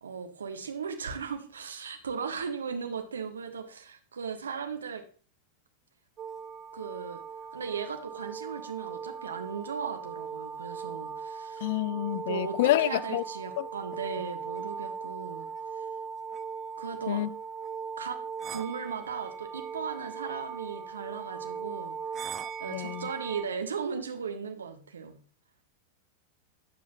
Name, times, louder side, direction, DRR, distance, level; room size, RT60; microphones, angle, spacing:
voice 1, 0.0-5.0 6.7-7.2 7.5-11.7 12.3-15.5 15.7-15.8 16.8-17.3 18.0-18.2 18.5-22.0 22.6-25.2, right 6 dB, 70° right, 1.2 m, -37 dB
sound 1, 6.2-23.5, right 6 dB, 30° right, 0.5 m, -39 dB
voice 2, 11.6-13.2 13.6-13.7 17.1-17.3 22.7-23.1, left 15 dB, 50° left, 0.4 m, -28 dB
9.2 x 7.3 x 3.0 m
figure-of-eight pair, 90°, 0 cm